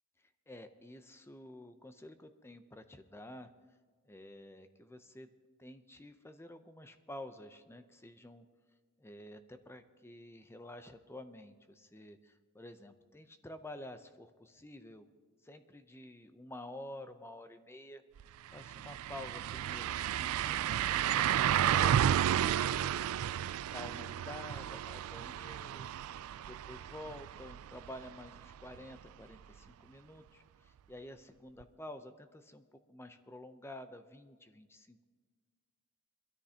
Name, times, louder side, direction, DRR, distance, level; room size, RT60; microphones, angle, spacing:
voice 1, 0.5-3.5 4.0-5.3 5.6-8.4 9.0-15.1 15.4-18.0 18.5-23.1 23.4-25.9 26.5-35.0, left 1 dB, 10° left, 9 dB, 0.6 m, -50 dB
sound 1, 18.2-18.3 18.6-28.4 28.7-28.8 31.6-31.7, right 10 dB, 65° right, 0.3 m, -32 dB
22.0 x 13.0 x 2.9 m, 1.5 s
head